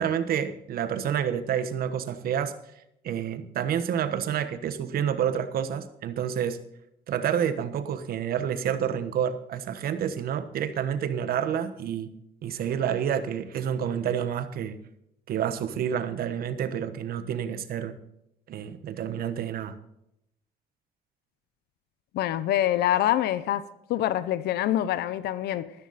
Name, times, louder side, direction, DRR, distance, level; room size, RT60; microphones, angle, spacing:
voice 1, 0.0-2.5 3.0-6.6 7.1-12.1 12.4-14.8 15.3-18.0 18.5-19.7, right 8 dB, 60° right, 1.3 m, -29 dB
voice 2, 22.1-23.6 23.9-25.7, left 12 dB, 75° left, 0.8 m, -25 dB
14.5 x 13.0 x 4.2 m
cardioid pair, 110°, 17 cm